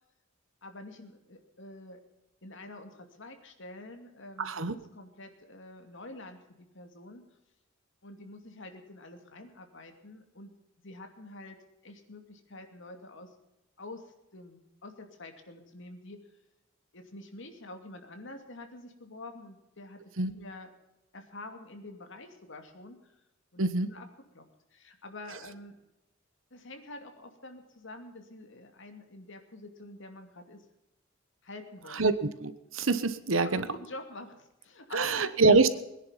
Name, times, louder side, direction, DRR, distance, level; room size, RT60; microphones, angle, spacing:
voice 1, 0.6-2.0 2.4-7.2 8.0-10.5 10.8-11.6 11.8-13.3 13.8-16.2 16.9-20.7 21.1-23.1 23.5-24.1 24.3-24.4 24.7-25.8 26.5-30.6 31.4-32.1 33.4-35.5, left 2 dB, 65° left, 5 dB, 2.6 m, -47 dB
voice 2, 4.4-4.7 20.2-20.3 23.6-23.9 32.0-32.1 32.4-33.6 34.9-35.8, right 3 dB, 75° right, 12 dB, 1.2 m, -25 dB
21.0 x 10.5 x 5.8 m, 0.91 s
head